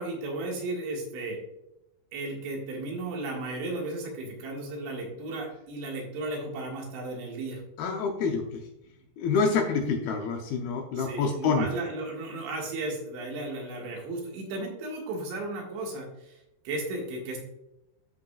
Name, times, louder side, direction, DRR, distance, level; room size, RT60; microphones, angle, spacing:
voice 1, 0.0-1.4 2.1-7.6 9.4-9.5 11.0-17.4, right 2 dB, 90° right, 0 dB, 4.0 m, -35 dB
voice 2, 7.8-8.6 9.2-11.7, left 5 dB, 75° left, 3 dB, 2.3 m, -27 dB
13.5 x 5.4 x 2.4 m, 0.87 s
omnidirectional pair, 5.0 m